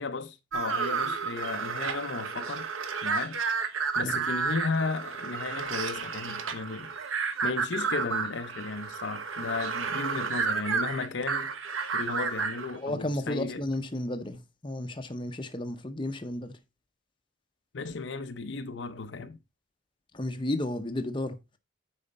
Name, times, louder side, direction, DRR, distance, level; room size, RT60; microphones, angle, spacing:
voice 1, 0.0-2.7 3.0-3.4 4.0-6.9 7.4-11.5 11.9-13.7 17.7-19.4, left 4 dB, 60° left, 0.6 m, -34 dB
sound 1, 0.5-12.8, right 5 dB, 80° right, 1.0 m, -31 dB
voice 2, 12.8-16.6 20.1-21.4, left 1 dB, 25° left, 0.8 m, -33 dB
8.7 x 5.0 x 4.1 m
head